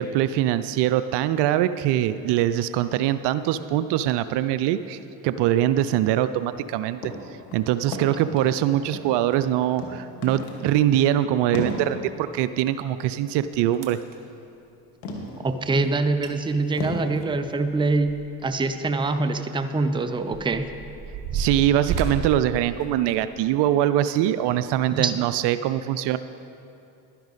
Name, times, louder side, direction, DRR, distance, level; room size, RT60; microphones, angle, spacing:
voice 1, 0.0-7.1 7.5-14.0 21.3-26.2, right 12 dB, 60° right, 13 dB, 0.5 m, -23 dB
sound 1, 7.0-7.2 7.5-8.6 8.9-9.5 9.8-10.0 10.2-10.6 10.9-11.1 11.5-11.8 14.2-14.3 15.0-15.4 15.9-16.0 16.8-17.1, left 3 dB, 85° left, 1.5 m, -33 dB
sound 2, 13.7-14.2 15.9-16.0 16.2-16.3 16.7-18.5 18.8-18.9 19.6-23.4 24.0-24.2 24.8-24.9, right 5 dB, 40° right, 1.2 m, -33 dB
voice 2, 15.4-20.7 24.9-25.1, right 3 dB, 10° right, 10 dB, 0.5 m, -24 dB
11.5 x 10.0 x 4.1 m, 2.7 s
hypercardioid pair, 65°, 46 cm